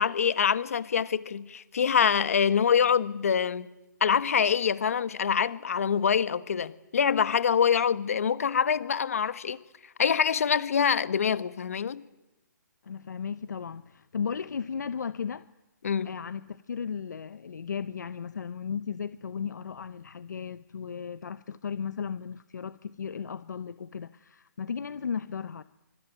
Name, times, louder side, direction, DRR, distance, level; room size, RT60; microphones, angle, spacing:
voice 1, 0.0-3.7 4.0-9.6 10.0-12.0 15.8-16.1, left 7 dB, 45° left, 1.4 m, -25 dB
voice 2, 12.8-15.5 16.0-25.6, left 6 dB, 65° left, 0.9 m, -35 dB
25.0 x 25.0 x 9.2 m
hypercardioid pair, 180°, 10 cm